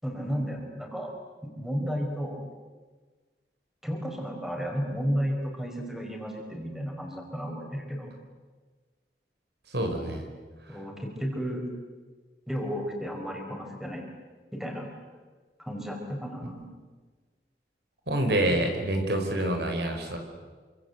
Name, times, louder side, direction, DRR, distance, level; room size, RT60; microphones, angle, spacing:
voice 1, 0.0-1.1 1.4-2.4 3.8-8.1 10.7-11.6 12.5-14.0 14.5-14.9 15.6-16.7, equal, ahead, 1 dB, 5.1 m, -33 dB
voice 2, 9.7-10.2 18.1-20.2, right 1 dB, 70° right, 4 dB, 5.1 m, -27 dB
28.0 x 25.5 x 8.2 m, 1.4 s
head